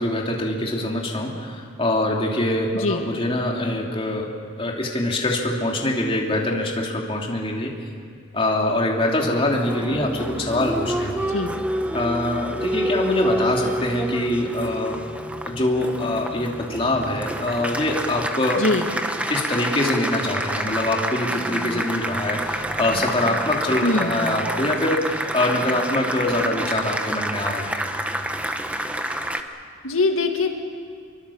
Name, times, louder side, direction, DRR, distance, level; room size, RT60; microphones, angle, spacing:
voice 1, 0.0-7.8 8.3-11.3 11.9-15.1 15.4-18.6 19.3-27.9, left 1 dB, 25° left, -1 dB, 2.8 m, -24 dB
voice 2, 2.7-3.1 11.3-11.6 18.6-18.9 23.8-24.2 29.8-30.5, left 3 dB, 85° left, 4 dB, 1.9 m, -22 dB
Applause, 9.4-29.4, right 1 dB, 5° right, 1.1 m, -28 dB
26.0 x 23.5 x 7.1 m, 2.1 s
head